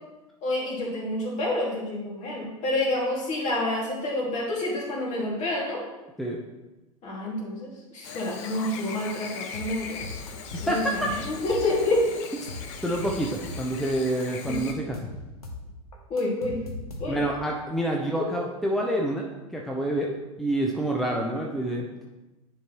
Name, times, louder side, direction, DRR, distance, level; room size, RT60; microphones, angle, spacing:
voice 1, 0.4-5.8 7.0-7.7 7.9-10.1 10.6-11.0 11.3-12.0 14.5-14.7 16.1-16.6 17.0-17.2 18.2-18.3, left 1 dB, 40° left, -2 dB, 2.2 m, -28 dB
Chirp tweet / Buzz, 8.0-14.7, left 6 dB, 55° left, 0.8 m, -40 dB
sound 1, 9.5-11.9 12.2-13.9 14.2-17.4, left 2 dB, 80° left, 0.9 m, -39 dB
voice 2, 10.7-11.2 12.8-15.1 17.1-19.3 19.5-21.9, right 1 dB, ahead, -1 dB, 0.7 m, -27 dB
9.7 x 4.5 x 3.0 m, 1.1 s
figure-of-eight pair, 85°, 19 cm